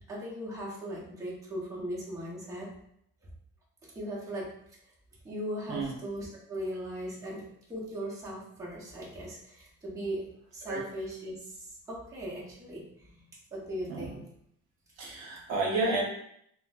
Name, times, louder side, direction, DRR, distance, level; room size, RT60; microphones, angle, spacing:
voice 1, 0.1-2.7 3.8-4.5 5.2-7.4 7.7-10.2 10.5-13.1 13.5-14.2, equal, 10° right, -6 dB, 0.8 m, -38 dB
voice 2, 15.0-16.0, right 2 dB, 55° right, -2 dB, 0.8 m, -31 dB
3.8 x 2.1 x 2.4 m, 0.72 s
cardioid pair, 140°, 30 cm